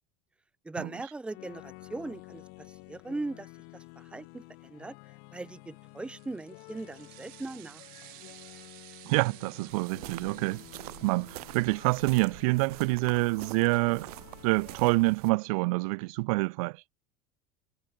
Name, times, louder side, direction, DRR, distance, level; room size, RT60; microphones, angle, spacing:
voice 1, 0.6-2.4 2.9-4.9 5.3-7.8, right 2 dB, 5° right, 1.0 m, -39 dB
sound 1, 1.3-15.0, left 38 dB, 60° left, 2.6 m, -51 dB
sound 2, 6.0-13.0, right 25 dB, 50° right, 2.8 m, -54 dB
voice 2, 9.0-10.6 11.0-14.1 14.4-16.8, right 25 dB, 70° right, 1.3 m, -27 dB
sound 3, 9.7-15.3, right 20 dB, 90° right, 1.4 m, -45 dB
cardioid pair, 160°, 19 cm